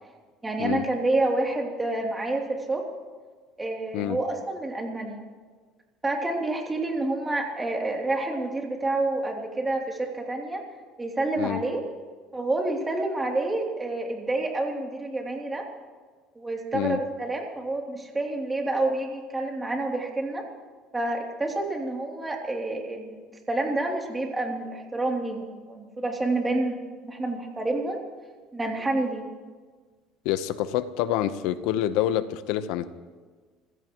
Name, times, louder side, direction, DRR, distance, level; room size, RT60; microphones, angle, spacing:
voice 1, 0.4-2.8 3.6-5.2 6.0-10.6 11.0-11.8 12.3-15.7 16.3-20.4 20.9-26.8 27.0-28.0 28.5-29.3, right 2 dB, 15° right, 2.9 m, -28 dB
voice 2, 30.2-33.0, left 12 dB, 80° left, 0.9 m, -27 dB
29.5 x 16.0 x 3.1 m
supercardioid pair, 110°, 0 cm